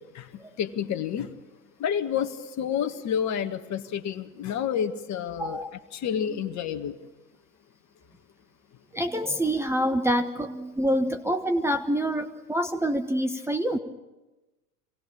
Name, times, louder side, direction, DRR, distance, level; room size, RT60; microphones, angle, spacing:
voice 1, 0.6-1.3 1.8-5.6 5.9-7.0, left 8 dB, 35° left, 9 dB, 1.7 m, -29 dB
voice 2, 5.4-5.7 8.9-13.8, equal, 5° right, 6 dB, 1.1 m, -26 dB
25.5 x 18.5 x 8.6 m, 1.1 s
hypercardioid pair, 90°, 46 cm